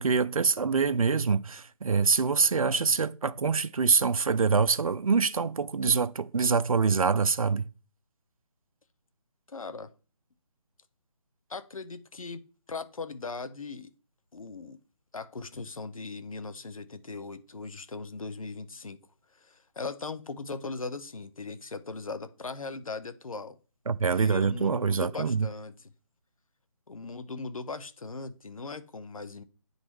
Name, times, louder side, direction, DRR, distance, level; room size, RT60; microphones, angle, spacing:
voice 1, 0.0-7.7 23.9-25.5, right 5 dB, 85° right, 0.6 m, -25 dB
voice 2, 9.5-9.9 11.5-12.4 12.7-13.9 14.3-14.8 15.1-19.0 19.3-23.6 24.2-25.9 26.9-29.4, left 4 dB, 85° left, 0.9 m, -39 dB
9.6 x 4.1 x 4.6 m
figure-of-eight pair, 160°, 17 cm